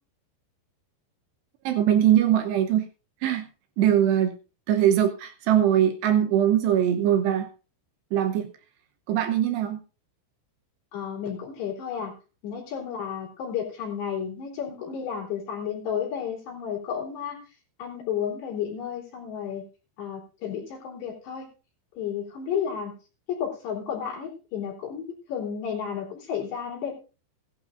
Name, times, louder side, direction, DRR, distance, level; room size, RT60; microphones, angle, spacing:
voice 1, 1.6-2.8 3.2-3.5 3.8-4.4 4.7-7.5 8.1-8.5 9.1-9.8, right 10 dB, 80° right, 6 dB, 2.5 m, -21 dB
voice 2, 10.9-12.1 12.4-17.4 17.8-19.7 20.0-21.5 22.0-22.9 23.3-26.9, left 8 dB, 55° left, -2 dB, 5.3 m, -32 dB
17.5 x 11.5 x 2.5 m, 0.32 s
omnidirectional pair, 5.9 m